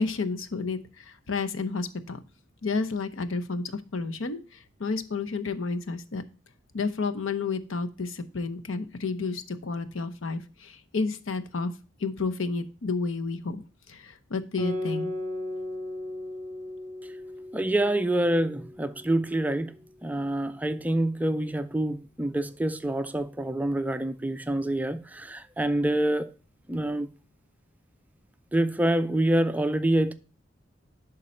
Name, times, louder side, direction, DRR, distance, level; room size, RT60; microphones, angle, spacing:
voice 1, 0.0-2.2 2.6-6.2 6.7-11.7 12.0-15.1, left 4 dB, 75° left, 0.8 m, -31 dB
Guitar, 14.6-19.5, left 1 dB, 20° left, 2.3 m, -36 dB
voice 2, 17.5-19.7 20.0-26.3 26.7-27.1 28.5-30.1, right 1 dB, 10° right, 0.3 m, -26 dB
11.0 x 3.9 x 4.3 m
head